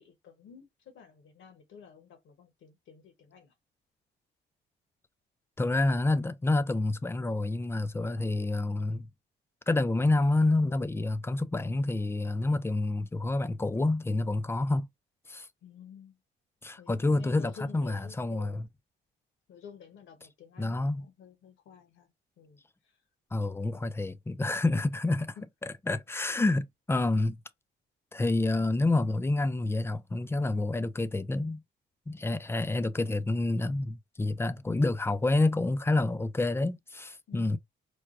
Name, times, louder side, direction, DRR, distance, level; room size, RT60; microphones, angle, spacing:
voice 1, 0.0-3.5 8.1-8.5 15.6-16.2 16.8-18.7 19.5-22.1 22.4-23.0 37.3-37.6, left 7 dB, 75° left, 1.0 m, -51 dB
voice 2, 5.6-9.1 9.7-14.9 15.3-15.5 16.6-18.7 20.6-21.1 23.3-25.4 25.6-27.4 28.1-31.6 32.1-37.6, left 2 dB, 10° left, 0.3 m, -28 dB
4.6 x 2.2 x 2.4 m
cardioid pair, 90°, 20 cm